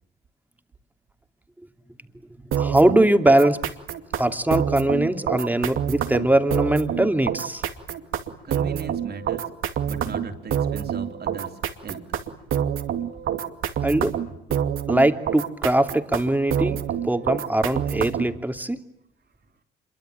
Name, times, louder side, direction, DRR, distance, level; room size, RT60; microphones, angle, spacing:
sound 1, 2.5-18.4, right 9 dB, 75° right, 2.5 m, -27 dB
voice 1, 2.6-3.6 4.2-7.6 13.8-14.2 14.9-18.8, right 1 dB, 10° right, 7 dB, 2.8 m, -21 dB
voice 2, 8.4-9.4 9.8-12.0, right 4 dB, 50° right, 6 dB, 3.6 m, -37 dB
27.0 x 23.5 x 9.0 m, 0.76 s
supercardioid pair, 65°, 21 cm